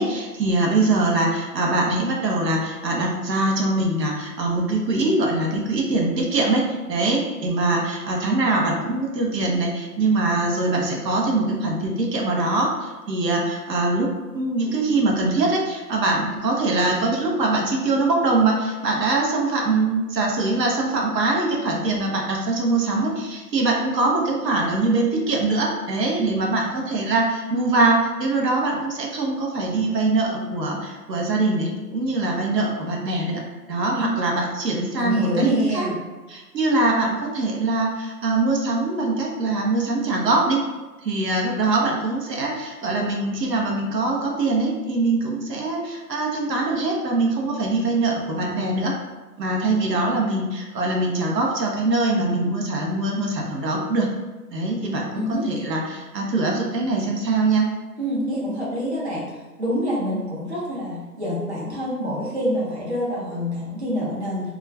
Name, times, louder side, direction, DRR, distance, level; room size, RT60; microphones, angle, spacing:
voice 1, 0.0-14.1 14.3-33.4 33.7-35.8 36.3-40.6 41.0-48.9 49.4-54.1 54.5-57.7 60.1-60.2, right 2 dB, 85° right, -1 dB, 0.8 m, -23 dB
voice 2, 35.0-36.0 55.1-55.5 58.0-64.5, equal, 45° right, -6 dB, 0.7 m, -26 dB
2.3 x 2.2 x 3.2 m, 1.2 s
hypercardioid pair, 180°, 48 cm